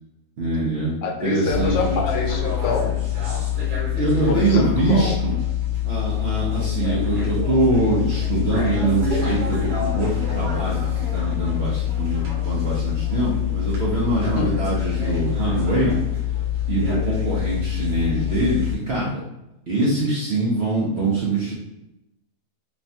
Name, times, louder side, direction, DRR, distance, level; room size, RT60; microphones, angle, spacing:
voice 1, 0.4-0.9 1.2-2.0 3.9-5.4 5.8-10.9 11.1-16.0 16.7-19.2 19.7-21.5, right 2 dB, 60° right, -6 dB, 0.7 m, -23 dB
voice 2, 1.0-3.0 4.3-5.2 14.4-14.5, left 4 dB, 80° left, 1 dB, 1.1 m, -26 dB
sound 1, 1.5-18.8, left 10 dB, 80° right, 1.3 m, -25 dB
3.2 x 2.2 x 2.6 m, 0.89 s
omnidirectional pair, 1.7 m